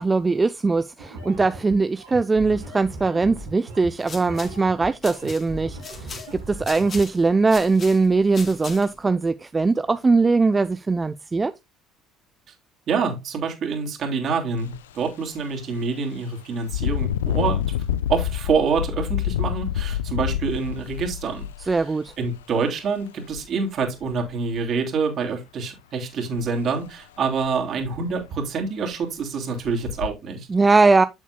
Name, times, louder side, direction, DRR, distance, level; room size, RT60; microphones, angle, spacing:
voice 1, 0.0-6.1 6.5-11.5 21.7-22.1 30.5-31.0, right 3 dB, 25° right, 0.5 m, -20 dB
sound 1, 1.0-7.0, right 1 dB, 85° right, 3.0 m, -38 dB
sound 2, 3.8-9.1, left 4 dB, 40° left, 2.7 m, -40 dB
voice 2, 12.9-17.6 18.1-21.7 22.2-30.5, right 5 dB, 50° right, 3.3 m, -26 dB
Engine, 14.6-14.8 15.3-15.4 16.6-22.4 23.3-23.4 23.8-24.6 26.4-26.5 26.9-27.0 27.4-27.5 27.8-28.3 28.9-29.0 29.6-30.1, left 11 dB, 85° left, 0.3 m, -27 dB
11.0 x 7.2 x 2.2 m
hypercardioid pair, 60°, 0 cm